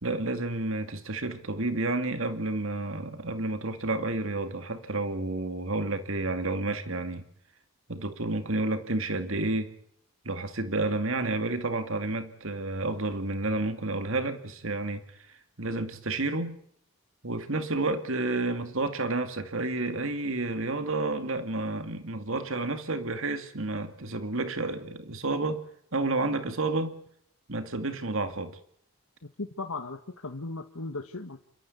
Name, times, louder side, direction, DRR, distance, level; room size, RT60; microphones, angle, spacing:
voice 1, 0.0-7.2 7.9-9.7 10.2-16.6 17.2-25.6 25.9-26.9 27.5-28.6, right 2 dB, 70° right, 8 dB, 2.3 m, -30 dB
voice 2, 29.4-31.4, left 3 dB, 85° left, 4 dB, 1.7 m, -37 dB
29.0 x 14.0 x 8.5 m, 0.67 s
head